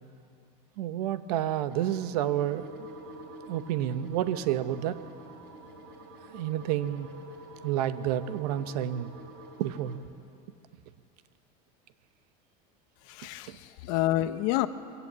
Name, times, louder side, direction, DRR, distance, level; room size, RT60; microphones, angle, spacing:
voice 1, 0.8-2.9 3.4-5.0 6.3-7.1 7.6-9.1 9.6-10.0 13.5-13.6, right 11 dB, 90° right, 1.0 m, -30 dB
sound 1, 1.7-10.0, right 1 dB, 60° right, 4.0 m, -47 dB
voice 2, 13.0-14.7, left 15 dB, 65° left, 1.0 m, -28 dB
23.5 x 16.5 x 7.5 m
supercardioid pair, 145°, 19 cm